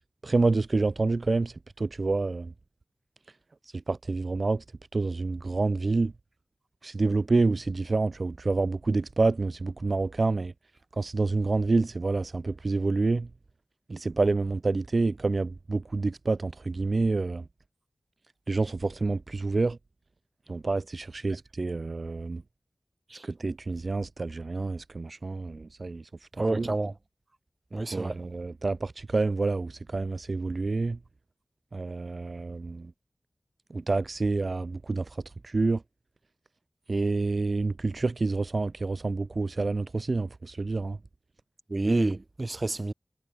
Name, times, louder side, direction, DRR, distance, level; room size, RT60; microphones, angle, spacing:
voice 1, 0.2-2.5 3.9-4.6 4.9-6.1 6.8-10.5 11.0-13.3 13.9-17.4 18.5-19.8 20.5-22.4 23.4-26.0 26.5-26.7 27.9-31.0 31.7-32.9 33.7-35.0 35.4-35.8 36.9-41.0, right 3 dB, 60° right, 2.5 m, -28 dB
voice 2, 26.4-26.9 27.7-28.1 41.7-42.9, right 2 dB, 45° right, 3.3 m, -28 dB
wide cardioid pair, 75°, 0 cm